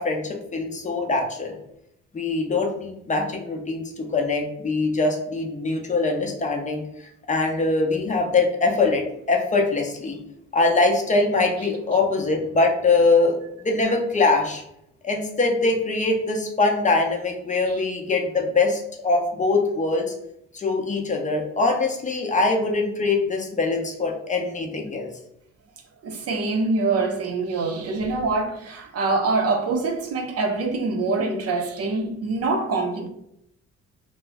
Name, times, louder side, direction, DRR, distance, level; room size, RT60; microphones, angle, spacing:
voice 1, 0.0-1.5 2.1-6.9 7.3-10.2 10.5-14.6 15.0-20.1 20.5-25.1, left 3 dB, 25° left, 0.6 m, -23 dB
voice 2, 26.0-33.1, right 3 dB, 55° right, 0.6 m, -25 dB
2.3 x 2.0 x 3.4 m
cardioid pair, 90°, 30 cm